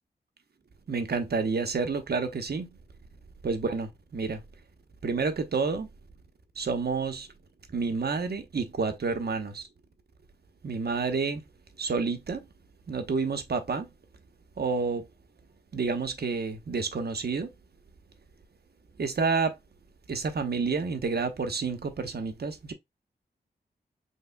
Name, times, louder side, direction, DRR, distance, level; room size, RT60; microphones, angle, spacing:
voice 1, 0.9-2.8 3.4-4.4 5.0-5.9 6.6-7.3 7.7-9.7 10.6-11.4 11.8-12.5 12.9-13.9 14.6-15.1 15.7-17.5 19.0-19.6 20.1-22.7, right 4 dB, 60° right, 1.0 m, -29 dB
5.6 x 3.4 x 2.2 m
cardioid pair, 45°, 18 cm